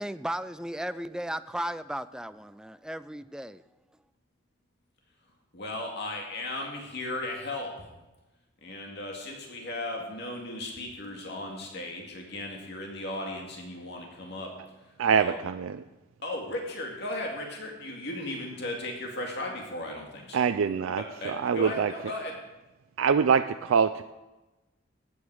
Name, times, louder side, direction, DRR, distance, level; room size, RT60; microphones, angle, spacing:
voice 1, 0.0-3.6, right 1 dB, 5° right, 13 dB, 0.3 m, -35 dB
voice 2, 5.5-7.7 8.6-14.5 15.1-15.4 16.2-20.6 21.0-22.4, left 1 dB, 55° left, 0 dB, 2.2 m, -36 dB
voice 3, 15.0-15.8 20.3-21.9 23.0-24.0, right 6 dB, 85° right, 9 dB, 0.4 m, -24 dB
15.5 x 9.3 x 4.8 m, 1.1 s
head